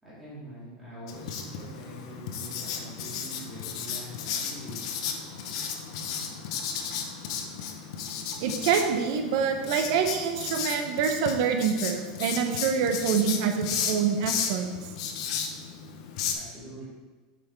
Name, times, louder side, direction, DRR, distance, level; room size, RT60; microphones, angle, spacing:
voice 1, 0.0-4.8 16.3-16.8, equal, 5° right, -11 dB, 2.3 m, -44 dB
Writing, 1.1-16.3, left 7 dB, 50° left, 0.8 m, -34 dB
voice 2, 8.4-14.8, right 6 dB, 45° right, 5 dB, 0.8 m, -26 dB
7.5 x 5.6 x 4.5 m, 1.3 s
supercardioid pair, 175°, 4 cm